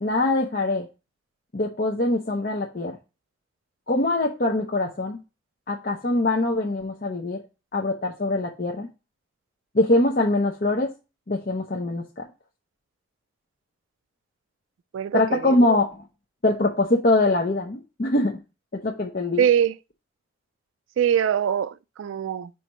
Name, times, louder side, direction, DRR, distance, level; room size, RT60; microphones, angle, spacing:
voice 1, 0.0-0.9 1.5-3.0 3.9-5.2 5.7-7.4 7.7-8.9 9.7-10.9 11.3-12.2 15.1-16.0 16.4-18.4 18.7-19.4, left 2 dB, 45° left, 0.7 m, -23 dB
voice 2, 14.9-15.5 19.4-19.8 21.0-22.5, right 9 dB, 80° right, 0.3 m, -23 dB
4.9 x 4.6 x 5.4 m
head